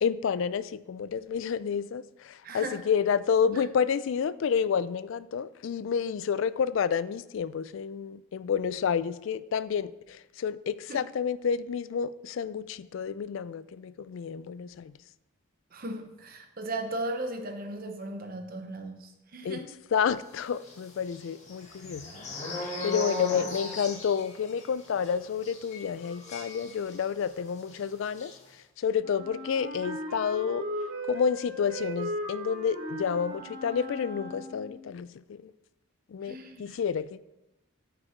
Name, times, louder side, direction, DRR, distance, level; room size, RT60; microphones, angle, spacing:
voice 1, 0.0-14.9 19.4-19.6 19.9-22.1 22.5-30.7 31.1-35.5 36.1-37.2, left 7 dB, 60° left, 0.3 m, -30 dB
voice 2, 2.4-2.8 3.5-3.7 10.9-11.0 15.7-19.7 36.2-36.8, right 2 dB, 40° right, 0.8 m, -37 dB
sound 1, 20.6-27.3 27.6-27.8 28.0-28.3, left 2 dB, 30° left, 1.5 m, -38 dB
Wind instrument woodwind instrument, 29.0-34.8, equal, 85° right, 2.5 m, -37 dB
9.5 x 5.3 x 4.4 m
head